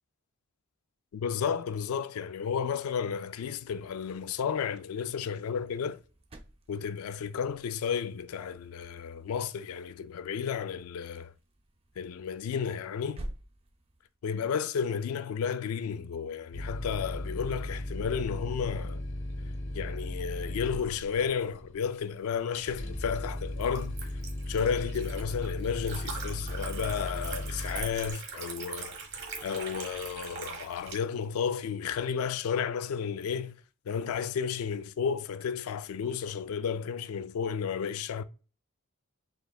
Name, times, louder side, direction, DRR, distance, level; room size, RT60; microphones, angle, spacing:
voice 1, 1.1-6.0 6.7-11.3 12.0-13.2 14.2-19.0 19.7-24.0 24.5-29.0 29.4-33.6 33.9-38.2, left 7 dB, 85° left, 0.3 m, -32 dB
sound 1, 3.1-14.2, right 1 dB, 25° right, 0.4 m, -51 dB
sound 2, 16.5-28.1, left 1 dB, 60° left, 0.8 m, -37 dB
Liquid, 22.6-30.9, right 5 dB, 50° right, 1.2 m, -42 dB
4.6 x 3.3 x 2.3 m
head